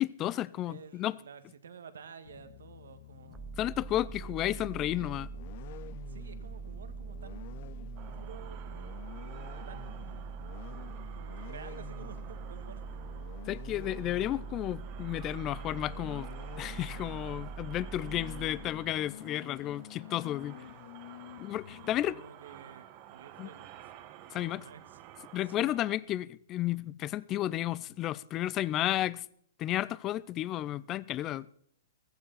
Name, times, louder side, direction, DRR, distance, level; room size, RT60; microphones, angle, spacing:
voice 1, 0.0-1.2 3.6-5.3 13.5-16.3 16.6-20.6 21.4-22.1 23.4-23.5 24.3-24.6 25.3-29.2 29.6-31.5, left 14 dB, 25° left, 0.4 m, -32 dB
voice 2, 0.6-3.6 6.1-7.7 8.1-9.1 9.7-10.5 11.1-13.1 18.0-18.3 21.8-23.7 24.3-25.0 25.4-25.7, right 7 dB, 75° right, 1.6 m, -51 dB
sound 1, 2.2-22.1, left 13 dB, 50° left, 0.8 m, -49 dB
sound 2, 3.3-19.1, right 6 dB, 10° right, 0.7 m, -43 dB
sound 3, 8.0-25.9, right 12 dB, 35° right, 1.4 m, -52 dB
15.5 x 15.0 x 4.1 m
hypercardioid pair, 135°, 0 cm